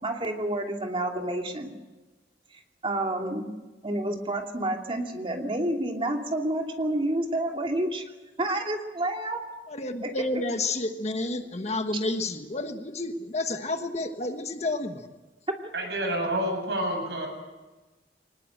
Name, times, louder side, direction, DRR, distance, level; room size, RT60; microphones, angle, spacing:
voice 1, 0.0-1.7 2.8-3.5 3.8-8.0 8.4-9.4 10.0-10.2 15.6-15.7, right 1 dB, 30° right, 2 dB, 2.7 m, -29 dB
voice 2, 9.7-15.1, left 2 dB, 40° left, 7 dB, 1.4 m, -30 dB
voice 3, 15.7-17.3, right 1 dB, 75° right, 3 dB, 7.6 m, -28 dB
24.0 x 20.0 x 7.9 m, 1.2 s
head